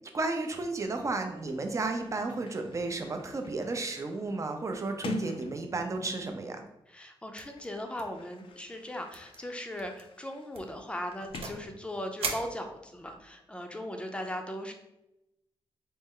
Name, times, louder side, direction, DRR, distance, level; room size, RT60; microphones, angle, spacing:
voice 1, 0.1-6.6, right 3 dB, 30° right, 5 dB, 0.5 m, -33 dB
Sliding door, 1.3-6.4 7.3-12.3, left 5 dB, 65° left, 0.4 m, -46 dB
voice 2, 6.9-14.7, left 1 dB, 10° left, 4 dB, 0.5 m, -38 dB
sound 1, 7.4-7.7 7.9-8.2 8.5-8.6 9.1-9.4 9.8-10.0 10.5-11.7 12.2-13.2, right 5 dB, 80° right, 0.6 m, -39 dB
4.2 x 2.1 x 3.7 m, 0.88 s
cardioid pair, 90°, 10 cm